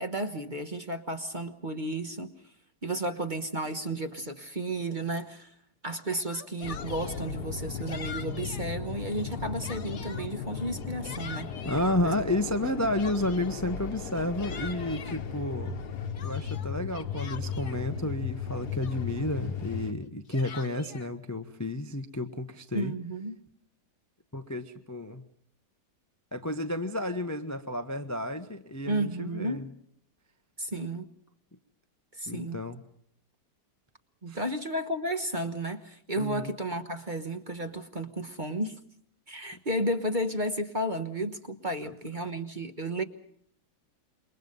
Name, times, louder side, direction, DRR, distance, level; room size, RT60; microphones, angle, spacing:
voice 1, 0.0-2.3 2.8-5.5 5.8-11.5 12.0-12.1 12.5-12.6 22.7-23.4 28.9-29.7 30.6-31.1 32.1-32.6 34.2-38.8 39.3-43.0, right 1 dB, 30° right, 7 dB, 1.2 m, -33 dB
Yell, 6.2-7.2 7.9-8.7 9.2-10.3 10.8-11.9 12.6-13.6 14.1-15.2 15.7-17.8 18.4-18.5 18.8-19.3 20.0-21.1, left 6 dB, 45° left, 1.3 m, -45 dB
sound 1, 6.6-19.9, left 6 dB, 65° left, 1.8 m, -36 dB
voice 2, 11.6-15.8 16.2-22.9 24.3-25.2 26.3-29.7 32.3-32.8 34.3-34.4 36.2-36.5 41.8-41.9, left 1 dB, 15° left, 8 dB, 0.8 m, -31 dB
28.0 x 23.0 x 5.4 m, 0.66 s
omnidirectional pair, 1.9 m